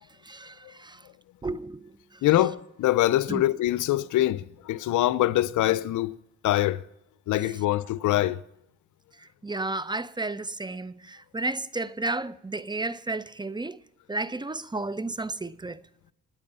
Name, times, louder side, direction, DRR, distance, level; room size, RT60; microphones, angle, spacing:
voice 1, 0.3-1.0 1.4-1.9 3.3-3.4 9.4-13.8 14.1-15.8, right 2 dB, 15° right, 0.6 m, -32 dB
voice 2, 2.2-6.2 6.4-6.8 7.3-8.4, left 14 dB, 80° left, 0.7 m, -24 dB
27.5 x 9.3 x 5.5 m
cardioid pair, 90°, 30 cm